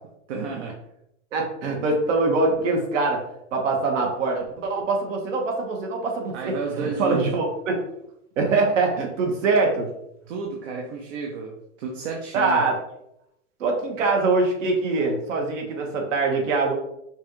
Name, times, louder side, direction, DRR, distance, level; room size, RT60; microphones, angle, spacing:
voice 1, 0.3-0.8 6.3-7.2 10.3-12.6, right 4 dB, 55° right, 0 dB, 0.8 m, -31 dB
voice 2, 1.3-3.2 3.5-7.9 8.4-9.9 12.3-12.7 13.6-16.7, right 3 dB, 70° right, 1 dB, 1.5 m, -23 dB
5.5 x 2.5 x 3.1 m, 0.80 s
hypercardioid pair, 140°, 39 cm